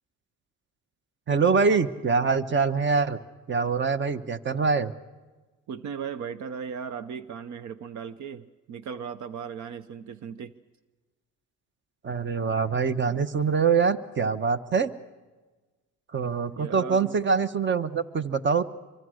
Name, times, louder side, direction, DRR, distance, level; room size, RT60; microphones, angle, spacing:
voice 1, 1.3-3.2 3.5-4.9 12.0-14.9 16.1-18.6, right 5 dB, 40° right, 12 dB, 1.2 m, -24 dB
voice 2, 5.7-10.5 16.5-17.1, right 7 dB, 70° right, 13 dB, 0.8 m, -37 dB
25.0 x 23.5 x 6.5 m, 1.3 s
cardioid pair, 90°, 30 cm